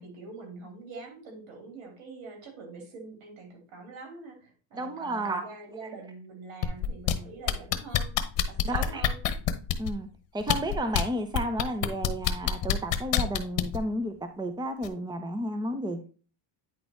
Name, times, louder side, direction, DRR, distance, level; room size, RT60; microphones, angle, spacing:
voice 1, 0.0-8.1 8.5-9.2, right 3 dB, 70° right, 2 dB, 3.5 m, -44 dB
voice 2, 4.7-5.4 8.6-9.1 9.8-10.1 10.3-16.0, right 1 dB, 10° right, 7 dB, 0.9 m, -32 dB
sound 1, 6.6-7.1 7.5-9.9 10.4-11.0 11.3-13.8 14.8-14.9, left 12 dB, 65° left, 1.1 m, -25 dB
9.5 x 4.0 x 4.5 m, 0.37 s
cardioid pair, 105°, 48 cm